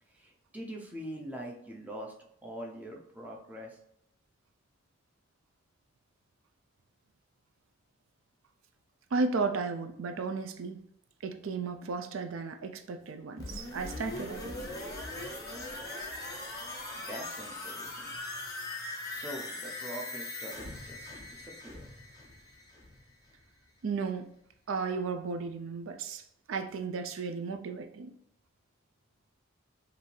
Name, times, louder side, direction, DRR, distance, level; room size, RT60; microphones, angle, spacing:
voice 1, 0.1-2.1 2.4-3.8 17.1-18.2 19.1-21.9, right 1 dB, 10° right, -1 dB, 0.6 m, -43 dB
voice 2, 9.1-10.8 11.2-14.6 23.8-24.3 24.7-28.1, right 4 dB, 75° right, 8 dB, 0.4 m, -34 dB
sound 1, 13.4-23.1 23.4-23.5, left 2 dB, 20° left, 1.0 m, -40 dB
5.4 x 2.6 x 3.2 m, 0.76 s
head